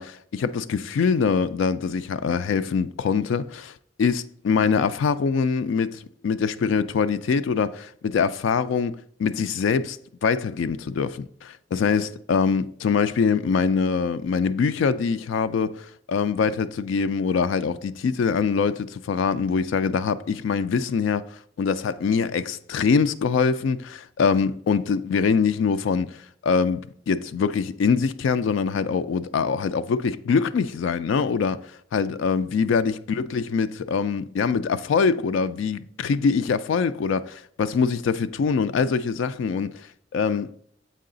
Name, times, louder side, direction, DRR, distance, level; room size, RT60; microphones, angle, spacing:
voice 1, 0.0-3.7 4.0-26.8 27.1-39.9 40.1-40.5, left 5 dB, 85° left, 0.3 m, -24 dB
7.5 x 4.7 x 3.8 m
head